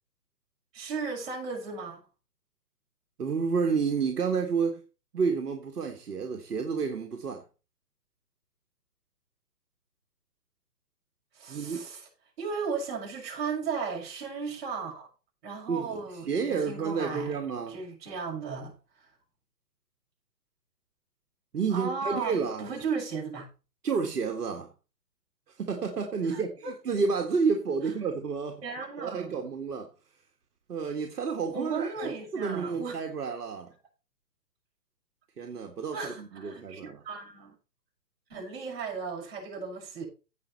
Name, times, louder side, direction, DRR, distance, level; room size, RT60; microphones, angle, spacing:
voice 1, 0.7-2.0 11.3-12.1 12.4-15.1 15.4-17.4 17.7-19.1 21.7-23.5 26.3-26.7 28.6-29.4 31.5-33.0 35.9-37.5 38.3-40.1, right 5 dB, 35° right, 6.6 m, -35 dB
voice 2, 3.2-4.8 5.1-7.4 11.5-11.8 15.7-17.8 21.5-22.7 23.8-24.7 25.6-28.6 29.0-29.9 30.7-33.7 35.4-37.0, right 5 dB, 70° right, 2.0 m, -30 dB
16.5 x 5.7 x 4.3 m
hypercardioid pair, 150°, 49 cm